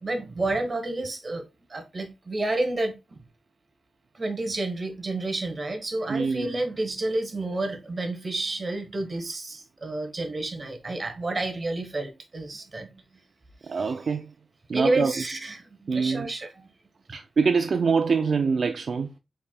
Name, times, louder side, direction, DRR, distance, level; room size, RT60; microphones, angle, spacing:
voice 1, 0.0-3.2 4.1-12.9 13.6-14.1 14.7-16.7, right 2 dB, 35° right, 1.1 m, -30 dB
voice 2, 6.1-6.5 13.7-14.3 14.7-15.1 15.9-16.3 17.1-19.1, right 5 dB, 60° right, 0.3 m, -24 dB
5.2 x 4.3 x 2.2 m
wide cardioid pair, 160°, 0 cm